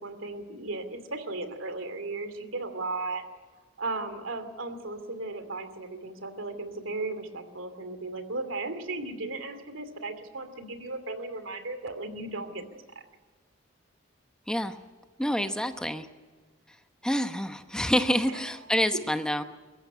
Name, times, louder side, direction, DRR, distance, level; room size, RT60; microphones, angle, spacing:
voice 1, 0.0-3.2 3.8-13.0 18.3-18.4, right 2 dB, 90° right, 9 dB, 2.7 m, -36 dB
voice 2, 15.2-16.1 17.0-19.4, equal, 5° left, 8 dB, 0.9 m, -27 dB
23.5 x 14.0 x 10.0 m, 1.4 s
head